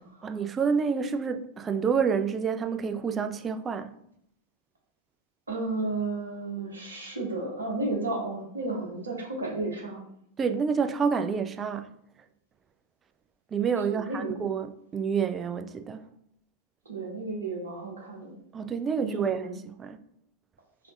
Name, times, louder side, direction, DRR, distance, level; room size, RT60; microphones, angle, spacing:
voice 1, 0.2-3.9 10.4-11.9 13.5-16.0 18.5-19.5 19.8-20.0, right 6 dB, 20° right, 0.3 m, -28 dB
voice 2, 5.5-10.0 13.9-14.4 16.9-18.4 19.0-19.6, right 2 dB, 75° right, 0.9 m, -33 dB
4.8 x 3.4 x 2.4 m
figure-of-eight pair, 90°, 0 cm